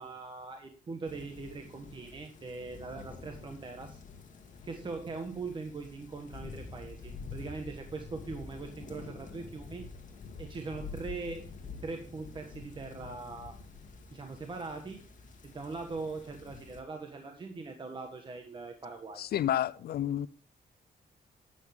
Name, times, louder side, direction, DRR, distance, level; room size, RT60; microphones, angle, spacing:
voice 1, 0.0-4.0 4.6-9.9 10.4-11.5 11.8-13.6 14.1-15.0 15.4-19.3, right 3 dB, 30° right, 1.4 m, -41 dB
sound 1, 1.0-16.8, left 4 dB, 50° left, 2.1 m, -47 dB
voice 2, 19.2-20.3, left 11 dB, 65° left, 0.5 m, -30 dB
12.0 x 9.4 x 3.6 m
wide cardioid pair, 170°, 17 cm